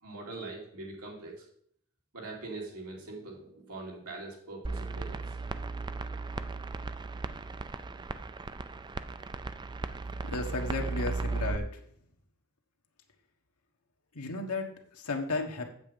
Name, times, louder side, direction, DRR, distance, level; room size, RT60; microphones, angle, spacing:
voice 1, 0.0-1.5 2.1-5.4, right 2 dB, 85° right, -1 dB, 2.8 m, -42 dB
sound 1, 4.6-11.6, right 3 dB, 20° right, 0.4 m, -36 dB
voice 2, 10.2-11.8 14.1-15.7, left 3 dB, 80° left, 2 dB, 1.4 m, -34 dB
8.1 x 7.7 x 5.2 m, 0.64 s
head